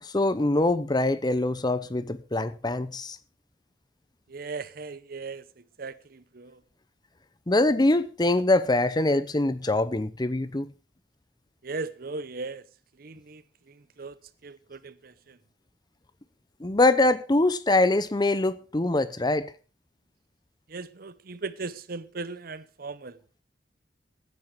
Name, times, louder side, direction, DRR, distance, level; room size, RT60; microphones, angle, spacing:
voice 1, 0.0-3.2 7.5-10.7 16.6-19.5, left 2 dB, 25° left, 0.8 m, -24 dB
voice 2, 4.3-6.6 11.6-12.6 13.0-14.2 14.4-15.4 20.7-23.2, right 3 dB, 55° right, 0.8 m, -38 dB
16.5 x 9.9 x 4.6 m
head